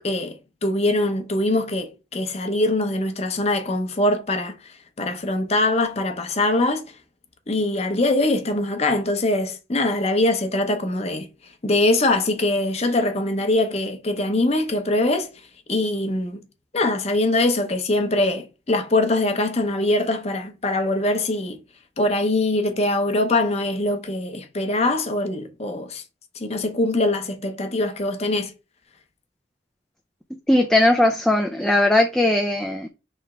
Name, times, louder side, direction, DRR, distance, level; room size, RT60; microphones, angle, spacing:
voice 1, 0.0-0.3 0.6-4.5 5.0-6.8 7.5-11.3 11.6-15.3 15.7-16.4 16.7-21.6 22.0-26.0 26.4-28.5, left 2 dB, 35° left, 0.7 m, -22 dB
voice 2, 30.5-32.9, left 1 dB, 5° left, 0.3 m, -19 dB
3.4 x 3.2 x 4.8 m
head